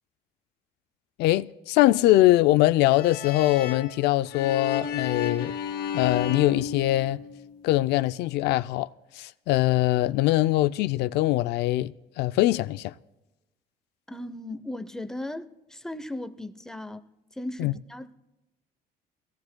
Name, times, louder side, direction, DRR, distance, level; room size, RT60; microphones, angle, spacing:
voice 1, 1.2-5.5 5.9-7.2 7.6-8.9 9.1-12.9 17.6-17.7, left 16 dB, 80° left, 0.4 m, -22 dB
sound 1, 2.8-7.5, left 8 dB, 65° left, 1.8 m, -32 dB
voice 2, 14.1-17.1 17.3-18.1, left 1 dB, 5° left, 0.6 m, -37 dB
22.5 x 17.0 x 2.2 m
cardioid pair, 110°, 17 cm